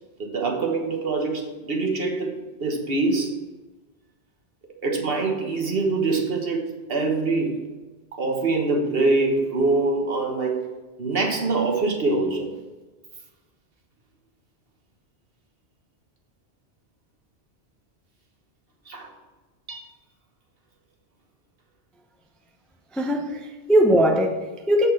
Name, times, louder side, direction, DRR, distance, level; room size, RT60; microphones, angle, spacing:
voice 1, 0.2-3.4 4.8-7.7 8.1-10.7 11.0-12.5 18.9-19.1 19.7-19.8 23.6-23.7, right 3 dB, 60° right, 1 dB, 1.4 m, -24 dB
voice 2, 22.9-24.9, equal, ahead, 2 dB, 0.5 m, -20 dB
8.2 x 4.2 x 5.8 m, 1.2 s
omnidirectional pair, 1.1 m